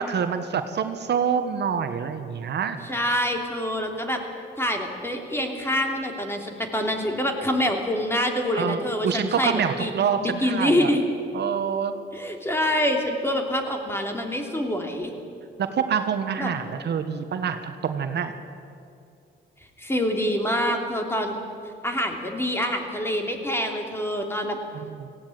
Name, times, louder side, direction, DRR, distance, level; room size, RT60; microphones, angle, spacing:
voice 1, 0.0-2.9 8.5-10.9 11.3-11.9 15.6-18.3 24.7-25.1, right 7 dB, 60° right, 8 dB, 1.2 m, -26 dB
voice 2, 2.9-4.2 4.6-9.5 9.8-9.9 10.2-11.0 12.1-15.1 16.4-16.5 19.8-21.4 21.8-24.6, left 1 dB, 10° left, 3 dB, 3.0 m, -26 dB
18.5 x 16.0 x 9.2 m, 2.4 s
cardioid pair, 90°, 20 cm